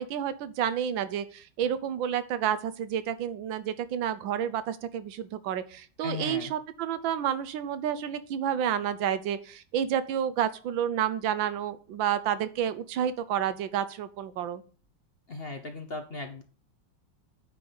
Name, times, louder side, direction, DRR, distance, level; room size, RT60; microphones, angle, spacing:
voice 1, 0.0-14.6, right 9 dB, 85° right, 13 dB, 1.5 m, -30 dB
voice 2, 6.0-6.5 15.3-16.4, left 3 dB, 45° left, 6 dB, 0.8 m, -37 dB
9.4 x 3.9 x 6.8 m, 0.38 s
omnidirectional pair, 2.1 m